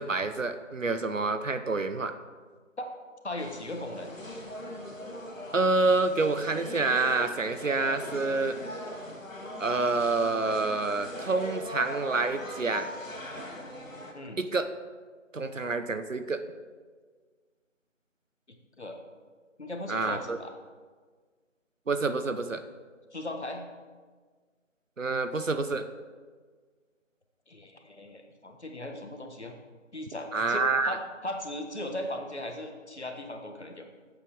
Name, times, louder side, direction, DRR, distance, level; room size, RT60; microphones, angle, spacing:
voice 1, 0.0-2.1 5.5-8.6 9.6-12.9 14.4-14.7 15.3-16.4 19.9-20.4 21.9-22.6 25.0-25.9 30.3-31.0, right 3 dB, 75° right, 10 dB, 1.0 m, -27 dB
voice 2, 3.2-4.1 14.1-14.4 18.5-19.0 19.6-20.5 23.1-23.7 27.5-29.5 29.9-33.9, left 1 dB, 60° left, 4 dB, 1.5 m, -38 dB
sound 1, 3.4-14.1, left 1 dB, 85° left, 2.2 m, -40 dB
8.5 x 8.3 x 6.3 m, 1.5 s
figure-of-eight pair, 170°, 38 cm